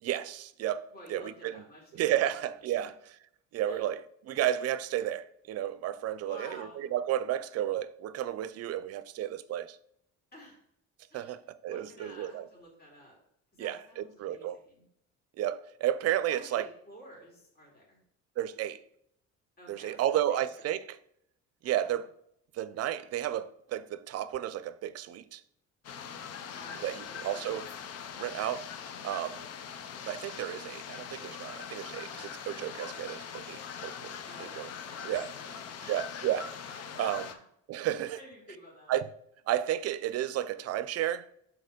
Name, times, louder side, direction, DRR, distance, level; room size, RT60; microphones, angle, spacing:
voice 1, 0.0-1.6 1.9-2.9 3.5-9.8 11.1-12.5 13.6-14.6 15.4-16.7 18.4-18.8 19.7-21.0 21.6-22.1 22.5-25.4 26.8-27.7 28.2-28.7 29.0-29.4 30.0-34.7 35.0-35.3 35.9-36.5 37.0-37.2 37.7-38.2 38.9-39.1 39.5-41.3, right 11 dB, 55° right, 0.5 m, -32 dB
voice 2, 0.9-2.4 2.7-2.9 3.7-3.8 6.2-6.8 10.3-10.6 11.1-11.4 11.7-13.2 13.5-14.8 16.3-18.0 19.6-20.4 21.6-22.0 26.5-27.6 30.4-30.7 34.2-36.0 36.7-37.4 37.9-38.9, equal, 30° left, 2.8 m, -52 dB
sound 1, 25.8-37.3, left 7 dB, 55° left, 0.8 m, -42 dB
6.6 x 4.3 x 5.1 m
cardioid pair, 135°, 30 cm